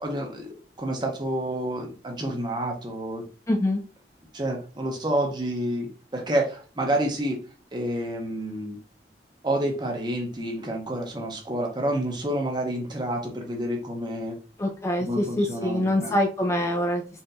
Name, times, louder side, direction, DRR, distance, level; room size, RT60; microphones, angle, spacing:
voice 1, 0.0-3.2 4.3-7.4 7.7-8.8 9.4-14.4 15.0-16.1, right 1 dB, 25° right, 2 dB, 0.8 m, -29 dB
voice 2, 3.5-3.8 14.6-17.2, left 1 dB, 15° left, 2 dB, 0.4 m, -25 dB
4.2 x 2.9 x 2.6 m, 0.38 s
head